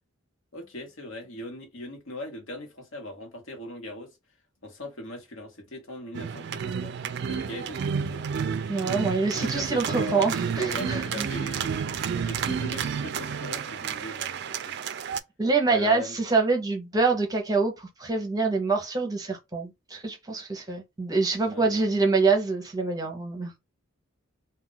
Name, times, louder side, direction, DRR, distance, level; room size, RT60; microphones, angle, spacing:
voice 1, 0.5-4.1 4.6-8.3 9.3-11.7 12.2-14.8 15.7-16.1 21.4-21.8, left 1 dB, 70° left, 1.0 m, -39 dB
sound 1, 6.1-15.2, right 6 dB, 55° right, 0.3 m, -31 dB
voice 2, 8.7-11.3 12.1-12.3 15.4-23.6, right 4 dB, 20° right, 0.6 m, -26 dB
2.3 x 2.2 x 3.7 m
head